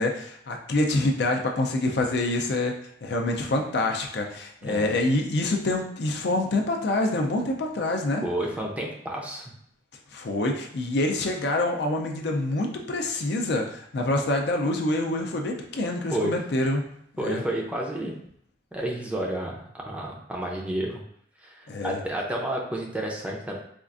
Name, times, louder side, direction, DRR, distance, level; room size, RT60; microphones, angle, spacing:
voice 1, 0.0-2.7 3.0-8.2 10.1-16.8 17.1-17.4 21.7-22.0, left 2 dB, 60° left, 2 dB, 0.5 m, -26 dB
voice 2, 8.2-9.5 16.1-16.4 17.2-18.1 18.7-21.0 21.4-23.6, right 1 dB, 5° right, -1 dB, 0.5 m, -30 dB
4.3 x 2.4 x 2.5 m, 0.67 s
head